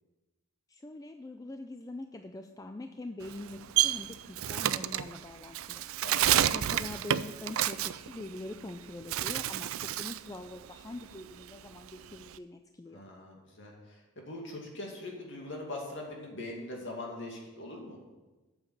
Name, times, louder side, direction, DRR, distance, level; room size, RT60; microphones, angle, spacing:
voice 1, 0.7-5.8 6.5-13.0, left 2 dB, 15° left, 6 dB, 0.3 m, -44 dB
Bird, 3.2-8.7 9.0-10.3 10.6-12.4, right 12 dB, 70° right, 0.4 m, -30 dB
voice 2, 6.0-6.4 12.9-18.0, left 2 dB, 55° left, -1 dB, 2.4 m, -42 dB
8.6 x 7.1 x 7.1 m, 1.2 s
head